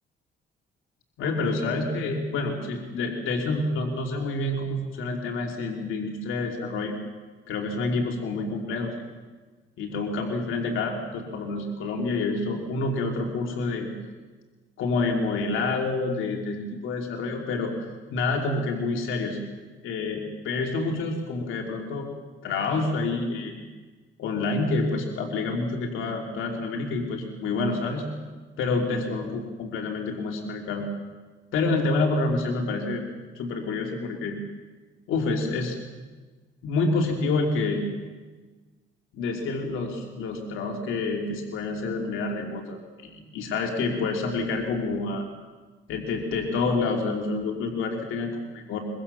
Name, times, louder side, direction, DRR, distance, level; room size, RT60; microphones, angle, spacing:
voice 1, 1.2-6.9 7.5-8.9 9.8-13.9 14.8-19.5 19.8-22.1 22.4-23.6 24.2-28.1 28.6-30.8 31.5-33.0 33.3-34.4 35.1-35.8 36.6-37.8 39.1-45.2 45.9-48.8, left 3 dB, 85° left, 1 dB, 3.0 m, -28 dB
24.0 x 22.0 x 7.0 m, 1.3 s
cardioid pair, 90°, 20 cm